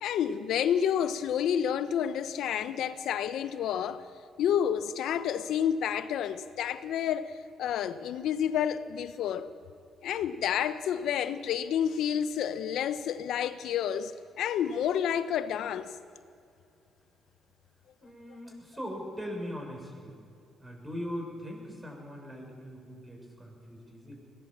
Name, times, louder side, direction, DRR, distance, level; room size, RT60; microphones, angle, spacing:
voice 1, 0.0-4.0 4.4-9.5 10.0-14.1 14.4-15.9, left 9 dB, 80° left, 0.9 m, -29 dB
voice 2, 18.0-20.2 20.6-24.1, equal, 15° right, 6.9 m, -40 dB
21.5 x 18.0 x 7.4 m
cardioid pair, 90°, 0 cm